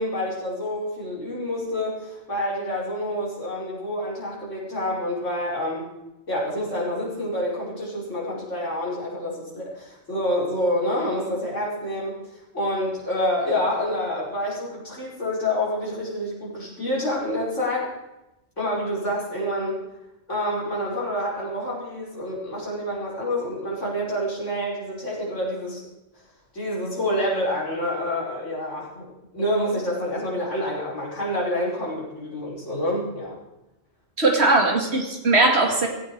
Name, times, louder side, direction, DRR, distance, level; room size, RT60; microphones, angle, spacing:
voice 1, 0.0-5.9 6.3-17.9 18.6-19.8 20.3-25.9 26.5-29.1 29.3-33.4, left 1 dB, 75° left, -4 dB, 5.4 m, -27 dB
voice 2, 34.2-35.9, right 2 dB, 55° right, 3 dB, 2.5 m, -19 dB
16.5 x 16.5 x 4.6 m, 0.95 s
omnidirectional pair, 1.3 m